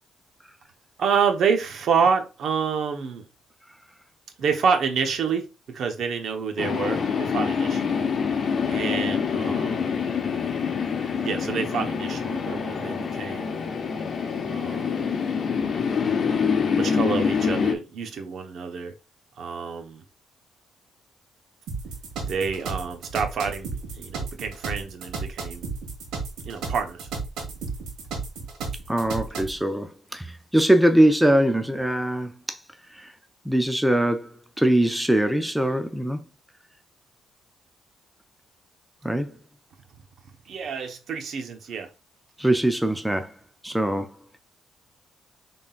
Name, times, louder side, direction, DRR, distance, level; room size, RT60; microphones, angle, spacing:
voice 1, 1.0-3.2 4.4-8.0 8.7-10.0 11.2-13.6 14.4-15.0 16.8-18.9 19.4-20.0 22.2-25.7 26.5-27.1 40.5-41.9, right 6 dB, 65° right, 1.0 m, -28 dB
sound 1, 6.6-17.8, left 6 dB, 50° left, 0.9 m, -26 dB
sound 2, 21.7-29.6, right 4 dB, 85° right, 1.9 m, -33 dB
voice 2, 28.9-32.6 32.9-33.1 33.5-36.2 39.0-39.3 42.4-43.3 43.6-44.2, right 1 dB, 5° right, 0.5 m, -22 dB
5.5 x 3.7 x 2.4 m
cardioid pair, 90°, 0 cm